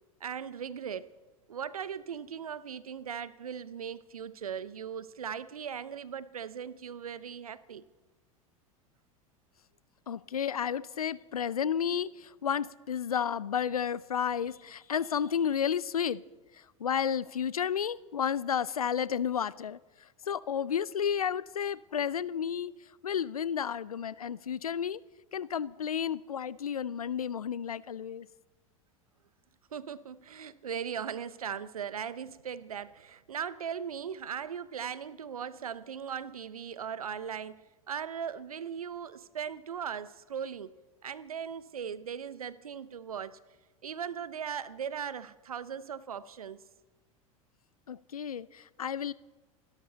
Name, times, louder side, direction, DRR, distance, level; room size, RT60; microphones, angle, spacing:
voice 1, 0.2-1.1 1.5-7.8 29.7-37.6 37.9-40.7 41.0-43.4 43.8-46.6, right 7 dB, 85° right, 17 dB, 0.8 m, -38 dB
voice 2, 10.1-16.2 16.8-19.8 20.3-22.7 23.0-25.0 25.3-28.3 47.9-49.1, left 8 dB, 85° left, 20 dB, 0.5 m, -32 dB
28.5 x 12.5 x 4.0 m, 1.2 s
hypercardioid pair, 85°, 18 cm